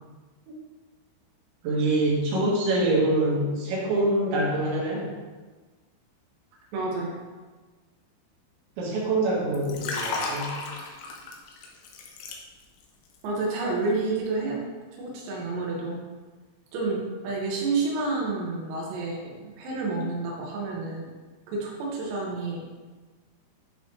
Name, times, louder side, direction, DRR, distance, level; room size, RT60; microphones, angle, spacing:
voice 1, 1.6-5.1 8.8-10.5, right 2 dB, 70° right, -4 dB, 3.6 m, -25 dB
voice 2, 6.7-7.2 13.2-14.6 15.0-16.0 16.7-21.1 21.5-22.6, right 3 dB, 90° right, -3 dB, 4.3 m, -29 dB
Liquid, 9.5-12.9 13.2-13.4, left 3 dB, 80° left, 3.0 m, -34 dB
11.0 x 4.6 x 3.2 m, 1.3 s
omnidirectional pair, 6.0 m